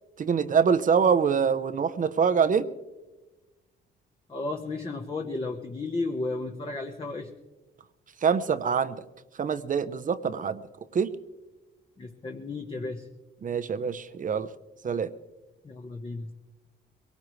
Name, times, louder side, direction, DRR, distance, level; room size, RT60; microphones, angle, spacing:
voice 1, 0.2-2.7 8.2-9.0 9.4-10.6 10.9-11.1 13.4-14.5 14.8-15.1, right 6 dB, 40° right, 13 dB, 0.8 m, -25 dB
voice 2, 4.3-7.3 12.0-13.1 15.6-16.3, left 3 dB, 25° left, 2 dB, 1.1 m, -33 dB
22.5 x 18.5 x 3.2 m, 1.1 s
cardioid pair, 90°, 20 cm